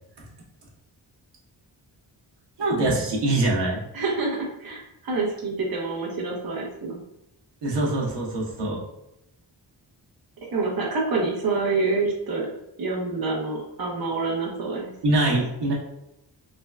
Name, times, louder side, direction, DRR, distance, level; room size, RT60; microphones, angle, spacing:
voice 1, 2.6-3.8 7.6-8.8 15.0-15.7, right 2 dB, 70° right, -3 dB, 1.1 m, -23 dB
voice 2, 3.9-7.0 10.5-12.5 12.8-14.9, right 3 dB, 55° right, -2 dB, 1.0 m, -27 dB
3.9 x 3.2 x 2.4 m, 0.87 s
wide cardioid pair, 165°, 44 cm